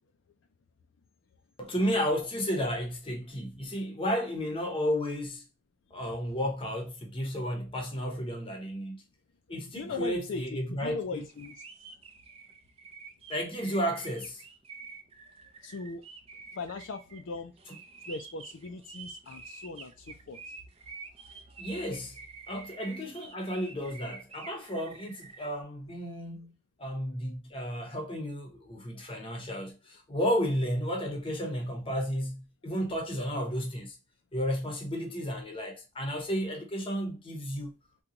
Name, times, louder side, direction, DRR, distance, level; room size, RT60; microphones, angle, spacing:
voice 1, 1.6-5.4 5.9-9.0 9.5-11.2 13.3-14.4 21.6-22.2 22.5-26.5 26.8-34.0 34.3-37.7, equal, 25° left, 0.8 m, -32 dB
voice 2, 9.7-11.6 11.9-12.0 15.6-16.0 16.5-17.5 18.0-20.5 28.9-29.0, left 3 dB, 70° left, 0.4 m, -39 dB
sound 1, 11.2-25.5, right 4 dB, 30° right, 0.5 m, -48 dB
3.8 x 2.3 x 2.8 m
head